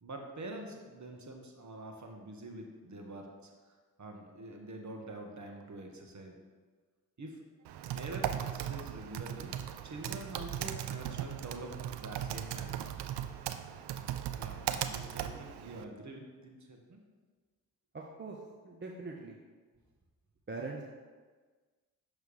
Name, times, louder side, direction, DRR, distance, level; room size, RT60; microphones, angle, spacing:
voice 1, 0.0-3.5 4.0-6.4 7.2-7.4 7.9-9.5 9.8-12.8 14.4-17.0, right 2 dB, 40° right, 2 dB, 1.2 m, -46 dB
Typing, 7.6-15.8, right 10 dB, 70° right, 0.5 m, -38 dB
voice 2, 17.9-19.4 20.5-20.8, right 3 dB, 25° right, 0 dB, 0.7 m, -42 dB
6.2 x 3.3 x 5.4 m, 1.4 s
hypercardioid pair, 40°, 43 cm